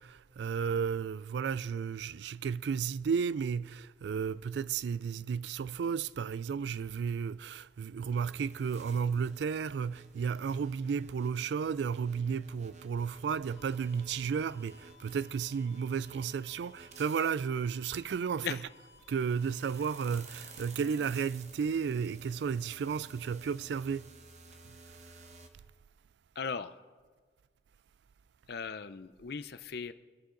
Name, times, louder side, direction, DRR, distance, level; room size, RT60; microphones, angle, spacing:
voice 1, 0.0-18.7 19.1-24.1, right 6 dB, 65° right, 0.3 m, -33 dB
sound 1, 8.1-17.3 18.8-25.5, right 3 dB, 40° right, 1.0 m, -54 dB
sound 2, 13.5-21.0, left 3 dB, 90° left, 0.9 m, -60 dB
voice 2, 26.4-26.8 28.5-29.9, left 5 dB, 60° left, 0.5 m, -38 dB
22.0 x 11.0 x 3.8 m
head